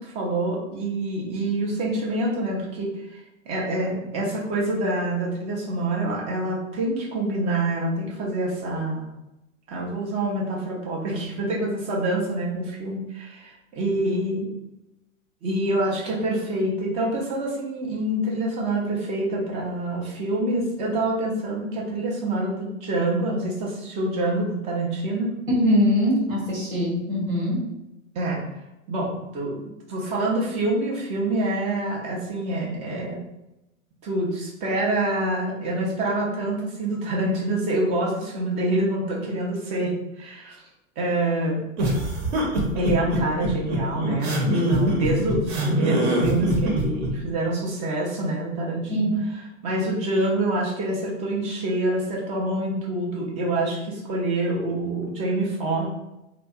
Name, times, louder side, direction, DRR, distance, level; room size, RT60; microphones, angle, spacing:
voice 1, 0.0-9.1 9.7-14.5 15.4-25.4 28.2-28.4 28.9-29.6 29.9-33.2 34.0-40.6 41.0-41.6 42.7-55.9, right 1 dB, 20° right, -3 dB, 0.3 m, -26 dB
voice 2, 25.5-27.6 48.9-49.2, equal, 85° right, -4 dB, 1.1 m, -22 dB
sound 1, 41.8-47.1, right 1 dB, 55° right, 0.8 m, -23 dB
2.7 x 2.2 x 2.2 m, 0.93 s
figure-of-eight pair, 95°, 39 cm